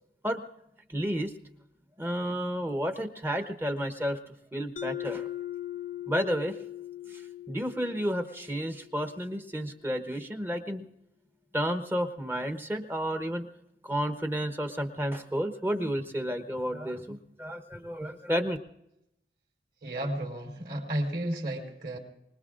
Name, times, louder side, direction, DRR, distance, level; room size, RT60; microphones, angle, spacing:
voice 1, 0.9-1.3 2.0-4.2 4.5-5.2 6.1-6.6 7.1-7.2 7.5-10.8 11.5-13.5 13.8-18.6, equal, 10° right, 6 dB, 0.9 m, -31 dB
Mallet percussion, 4.8-9.3, left 12 dB, 45° left, 0.6 m, -40 dB
voice 2, 19.8-22.0, right 1 dB, 55° right, 2 dB, 3.7 m, -33 dB
24.5 x 20.0 x 2.5 m, 0.85 s
head